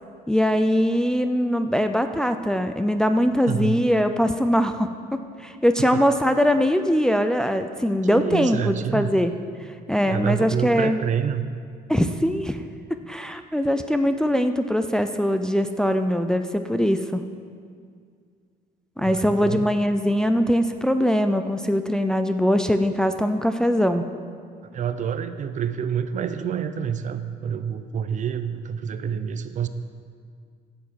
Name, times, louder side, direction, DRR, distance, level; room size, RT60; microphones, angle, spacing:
voice 1, 0.3-9.3 9.9-11.0 11.9-12.6 12.9-17.2 19.0-24.0, equal, 5° left, 8 dB, 0.5 m, -22 dB
voice 2, 3.5-3.8 8.1-9.1 10.0-11.5 19.0-19.7 24.6-29.7, right 7 dB, 45° right, 11 dB, 0.7 m, -27 dB
11.0 x 7.2 x 7.5 m, 2.1 s
cardioid pair, 110°, 17 cm